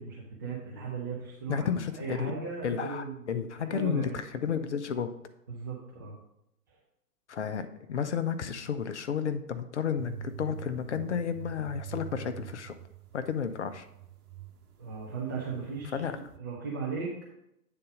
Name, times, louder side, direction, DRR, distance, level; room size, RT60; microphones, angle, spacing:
voice 1, 0.0-4.2 5.5-6.2 6.7-6.8 14.8-16.0 16.4-17.2, right 5 dB, 15° right, -5 dB, 0.5 m, -37 dB
voice 2, 1.5-2.3 2.6-5.1 7.3-12.8 13.1-13.9 15.9-16.2, left 7 dB, 45° left, 10 dB, 0.6 m, -32 dB
sound 1, 10.0-15.0 15.3-16.4, right 10 dB, 65° right, 1.1 m, -44 dB
8.7 x 3.9 x 5.0 m, 0.81 s
figure-of-eight pair, 120°, 48 cm